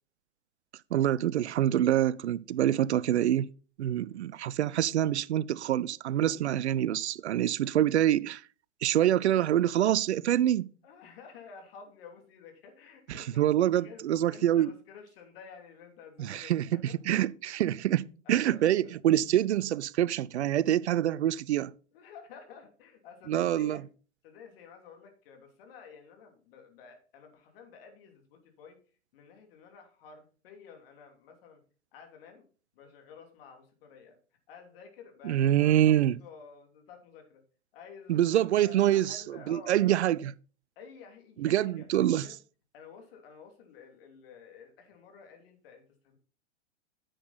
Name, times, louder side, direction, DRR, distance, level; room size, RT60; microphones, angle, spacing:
voice 1, 0.9-3.5 3.8-8.4 8.8-10.7 13.1-14.7 16.2-16.7 17.1-21.7 23.3-23.8 35.2-36.1 38.1-40.3 41.4-42.3, right 12 dB, 70° right, 0.5 m, -26 dB
voice 2, 10.8-13.4 13.7-17.0 18.2-18.9 21.9-23.9 24.2-28.8 29.1-31.6 31.9-32.5 32.7-34.2 34.5-37.4 37.7-40.0 40.7-42.4 42.7-46.2, left 6 dB, 55° left, 3.1 m, -51 dB
10.0 x 7.9 x 4.1 m
hypercardioid pair, 110°, 35 cm